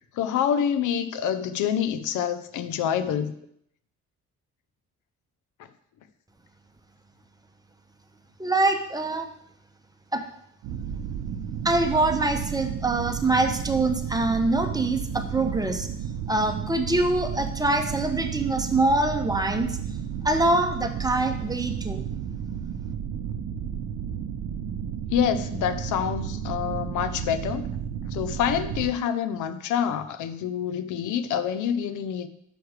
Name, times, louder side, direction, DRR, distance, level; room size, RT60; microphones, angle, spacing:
voice 1, 0.1-3.3 25.1-27.7 28.1-32.3, left 8 dB, 80° left, 12 dB, 0.7 m, -27 dB
voice 2, 8.4-9.3 10.1-10.2 11.6-15.9 16.3-19.8 20.2-22.0, right 2 dB, 15° right, 5 dB, 1.1 m, -24 dB
sound 1, 10.6-28.9, right 8 dB, 90° right, 0.7 m, -32 dB
6.3 x 5.7 x 6.5 m, 0.70 s
cardioid pair, 90°, 30 cm